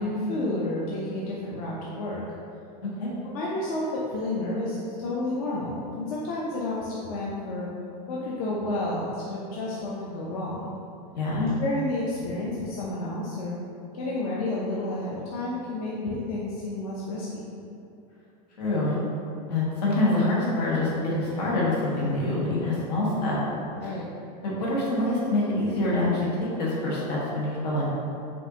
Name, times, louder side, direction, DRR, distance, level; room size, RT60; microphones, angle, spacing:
voice 1, 0.0-2.2 3.2-7.7 8.1-10.7 11.3-13.6 13.9-17.6 23.8-24.0, left 2 dB, 65° left, -5 dB, 0.6 m, -30 dB
voice 2, 11.1-11.5 18.6-19.0 19.5-23.4 24.4-27.9, left 2 dB, 85° left, -6 dB, 1.4 m, -26 dB
5.3 x 2.6 x 2.8 m, 2.6 s
supercardioid pair, 170°, 20 cm